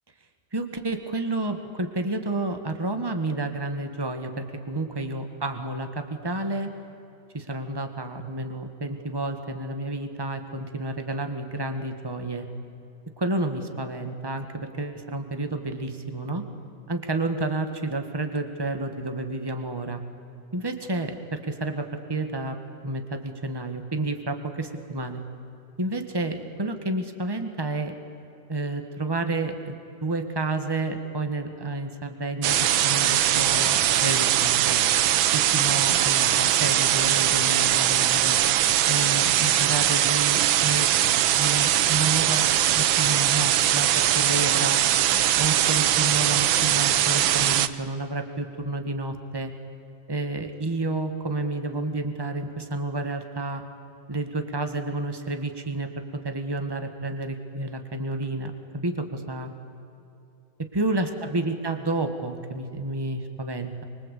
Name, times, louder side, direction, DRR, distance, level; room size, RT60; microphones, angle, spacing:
voice 1, 0.5-6.7 7.3-12.4 13.2-16.4 16.9-20.0 20.5-25.2 25.8-27.9 28.5-29.8 30.0-34.8 35.3-38.4 38.9-40.9 41.4-42.5 42.8-44.8 45.4-49.5 50.1-53.6 54.1-55.9 56.2-58.5 58.8-59.5 60.6-63.8, right 2 dB, 10° right, 7 dB, 1.7 m, -30 dB
sound 1, 32.4-47.7, right 11 dB, 85° right, 1.6 m, -21 dB
25.0 x 24.0 x 8.5 m, 2.8 s
omnidirectional pair, 2.2 m